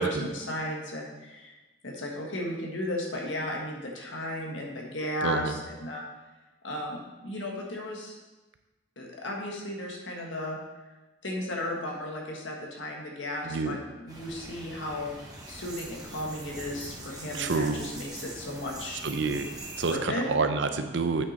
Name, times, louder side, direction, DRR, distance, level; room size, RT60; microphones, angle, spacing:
voice 1, 0.0-1.5 1.8-6.0 6.6-8.1 9.0-10.6 11.2-15.1 15.5-19.0 19.9-20.3, left 1 dB, 85° left, -1 dB, 1.6 m, -35 dB
voice 2, 5.2-5.5 13.4-13.8 17.4-17.8 19.0-19.5 19.8-21.2, right 4 dB, 70° right, 8 dB, 0.6 m, -28 dB
sound 1, 14.1-19.9, right 2 dB, 20° right, 1.3 m, -43 dB
8.5 x 5.7 x 4.2 m, 1.1 s
head